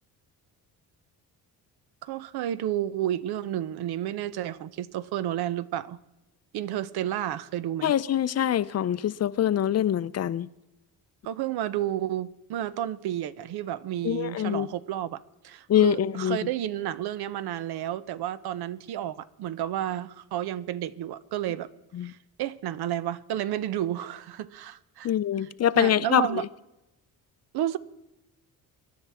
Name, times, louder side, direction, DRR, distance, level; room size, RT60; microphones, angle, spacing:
voice 1, 2.0-6.0 6.5-7.9 11.2-21.7 22.0-25.1 25.4-25.5 25.8-26.4 27.5-27.8, right 12 dB, 75° right, 0.7 m, -31 dB
voice 2, 7.8-10.5 14.0-14.7 15.7-16.4 21.9-22.1 25.0-26.3, left 10 dB, 40° left, 0.5 m, -24 dB
24.5 x 11.0 x 3.5 m
cardioid pair, 95°, 38 cm